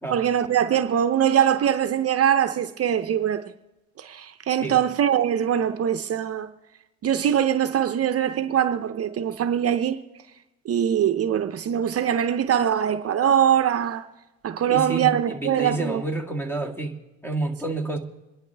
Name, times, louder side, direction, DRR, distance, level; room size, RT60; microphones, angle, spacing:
voice 1, 0.1-3.4 4.0-6.5 7.0-10.0 10.7-14.1 14.4-16.0, right 9 dB, 50° right, 0.7 m, -22 dB
voice 2, 14.7-18.0, right 2 dB, 10° left, 1.9 m, -29 dB
26.5 x 11.0 x 3.4 m
cardioid pair, 90°, 30 cm